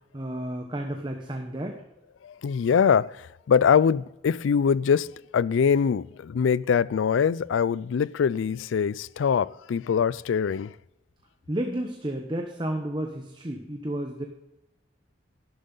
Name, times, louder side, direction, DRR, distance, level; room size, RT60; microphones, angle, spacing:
voice 1, 0.1-1.8 11.5-14.2, right 1 dB, 25° right, 1.0 m, -31 dB
voice 2, 2.2-10.7, left 7 dB, 85° left, 0.4 m, -23 dB
12.0 x 12.0 x 3.9 m
head